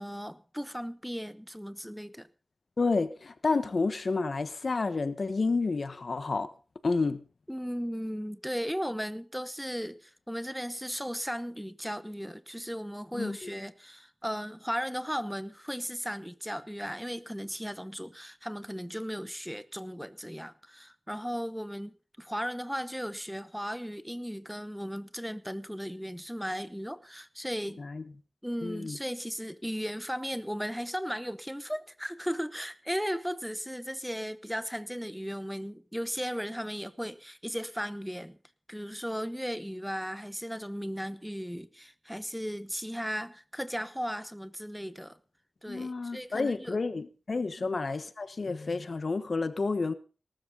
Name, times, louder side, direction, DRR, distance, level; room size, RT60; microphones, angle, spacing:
voice 1, 0.0-2.3 7.5-27.8 28.4-38.4 38.7-45.2 45.6-46.8 47.6-47.7, equal, ahead, 0.9 m, -36 dB
voice 2, 2.8-6.5 6.8-7.2 13.1-13.5 27.8-28.0 28.6-29.0 45.7-49.9, left 3 dB, 60° left, 1.2 m, -30 dB
19.0 x 13.0 x 4.0 m
wide cardioid pair, 100°, 0 cm